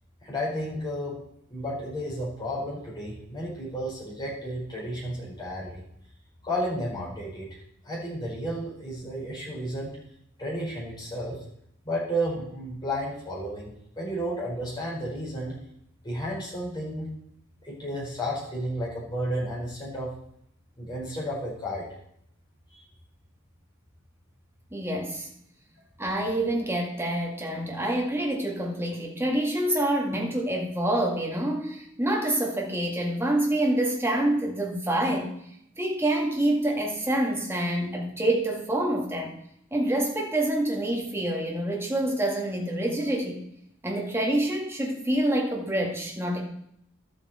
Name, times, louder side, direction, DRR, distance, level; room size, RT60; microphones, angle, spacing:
voice 1, 0.2-1.2 1.5-5.8 6.4-7.5 7.8-9.9 10.4-11.4 11.8-15.6 16.0-17.1 17.6-20.1 20.8-21.9 22.7-22.8, equal, 20° left, -7 dB, 4.8 m, -32 dB
voice 2, 24.7-25.3 26.0-35.3 35.8-39.3 39.7-43.4 43.8-46.4, right 1 dB, 10° right, 0 dB, 2.0 m, -27 dB
12.0 x 8.1 x 4.4 m, 0.72 s
head